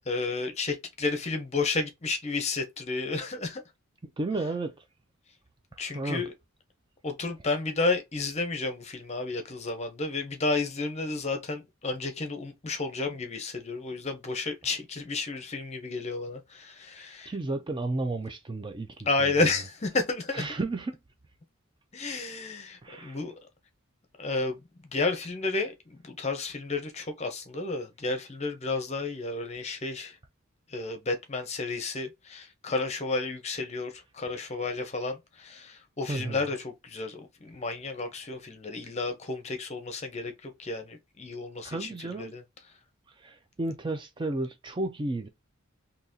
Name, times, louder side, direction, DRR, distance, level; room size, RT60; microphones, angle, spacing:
voice 1, 0.1-3.6 5.8-6.3 7.0-17.3 19.0-20.6 21.9-23.3 24.2-24.6 24.9-30.1 30.7-42.4, left 3 dB, 30° left, 0.7 m, -32 dB
voice 2, 4.2-4.7 5.9-6.2 17.3-19.3 20.3-21.0 22.8-23.2 36.1-36.4 41.6-42.3 43.2-45.3, right 2 dB, 20° right, 0.4 m, -32 dB
3.9 x 2.8 x 2.7 m
head